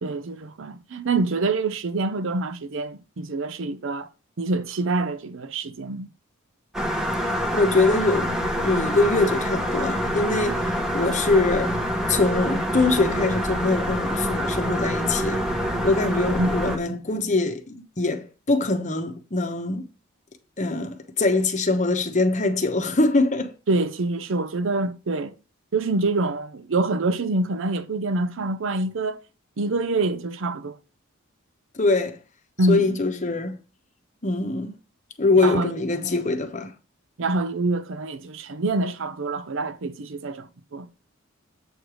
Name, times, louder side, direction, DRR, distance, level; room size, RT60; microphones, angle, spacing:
voice 1, 0.0-4.1 4.4-6.1 16.4-16.8 23.7-25.3 25.7-29.2 29.6-30.8 32.6-33.0 35.4-35.7 37.2-40.9, right 2 dB, 60° right, 0.6 m, -26 dB
sound 1, 6.7-16.8, equal, 5° right, 0.9 m, -26 dB
voice 2, 7.5-8.3 8.6-11.8 12.1-15.4 15.8-19.9 20.6-23.5 31.7-32.2 32.7-33.6 34.2-34.7 35.2-36.7, left 3 dB, 35° left, 0.9 m, -23 dB
7.9 x 3.3 x 6.1 m
head